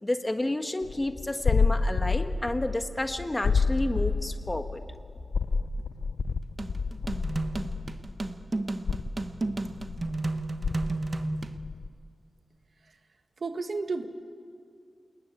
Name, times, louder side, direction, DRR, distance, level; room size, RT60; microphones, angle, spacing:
voice 1, 0.0-4.8, left 1 dB, 20° left, 7 dB, 1.4 m, -30 dB
sound 1, 0.8-8.4 8.7-11.9, left 4 dB, 90° left, 0.7 m, -29 dB
sound 2, 6.6-11.6, right 2 dB, 35° right, 1.1 m, -32 dB
voice 2, 13.4-14.1, right 3 dB, 65° right, 7 dB, 1.7 m, -32 dB
28.5 x 20.0 x 9.4 m, 2.3 s
wide cardioid pair, 95°, 0 cm